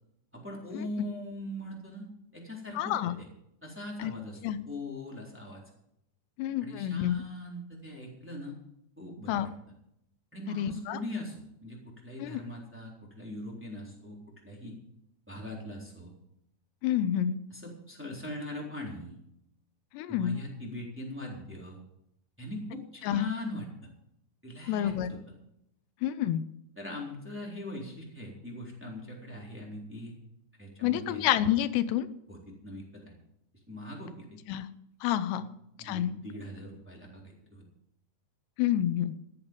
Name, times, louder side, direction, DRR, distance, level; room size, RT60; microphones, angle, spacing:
voice 1, 0.3-2.1 2.3-3.2 3.6-5.6 6.6-8.6 9.0-9.5 10.3-14.7 15.3-16.1 17.5-19.2 20.1-21.8 22.4-23.9 24.4-25.2 26.8-30.1 30.6-31.2 32.3-33.2 33.7-34.4 35.4-35.5 35.8-37.6, left 1 dB, 5° right, -3 dB, 2.9 m, -41 dB
voice 2, 2.8-3.2 4.0-4.1 4.4-4.6 6.4-7.2 9.3-9.5 10.5-11.0 12.2-12.4 16.8-17.4 19.9-20.4 23.0-23.3 24.7-25.1 26.0-26.4 30.8-32.1 34.5-34.7 35.0-35.5 35.8-36.2 38.6-39.2, left 11 dB, 85° left, 13 dB, 2.9 m, -28 dB
14.0 x 10.5 x 5.2 m, 0.78 s
omnidirectional pair, 4.8 m